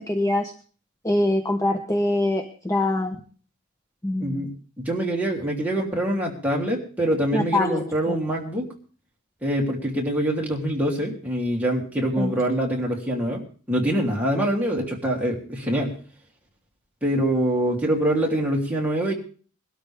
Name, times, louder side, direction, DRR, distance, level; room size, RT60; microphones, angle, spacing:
voice 1, 0.1-0.5 1.0-3.2 4.0-4.5 7.3-8.1 12.2-12.3, left 1 dB, 15° left, 5 dB, 0.9 m, -24 dB
voice 2, 4.2-4.5 4.8-8.7 9.4-13.4 13.7-15.9 17.0-19.1, right 1 dB, 5° right, -1 dB, 3.0 m, -24 dB
22.0 x 12.5 x 3.5 m, 0.40 s
head